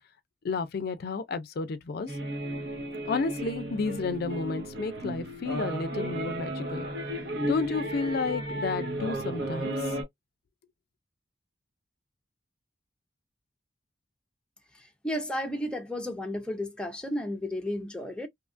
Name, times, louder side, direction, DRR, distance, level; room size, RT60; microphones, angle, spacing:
voice 1, 0.4-2.2 3.0-6.9 7.4-10.0, left 4 dB, 55° left, 0.4 m, -32 dB
sound 1, 2.1-10.0, right 1 dB, 65° right, 0.9 m, -34 dB
voice 2, 14.8-18.3, left 1 dB, 5° left, 0.5 m, -33 dB
2.7 x 2.3 x 2.4 m
head